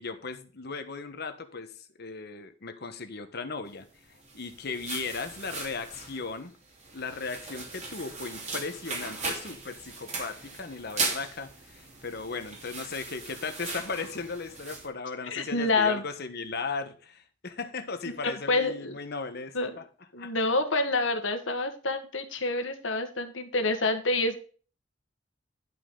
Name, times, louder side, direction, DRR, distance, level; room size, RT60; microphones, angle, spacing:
voice 1, 0.0-6.5 6.9-19.9 20.2-20.3, left 4 dB, 55° left, 1.2 m, -37 dB
sound 1, 4.1-14.9, right 3 dB, 35° right, 3.1 m, -38 dB
voice 2, 15.2-16.0 18.2-18.9 19.5-19.7 20.1-24.4, left 2 dB, 85° left, 1.6 m, -27 dB
11.0 x 5.9 x 3.8 m
head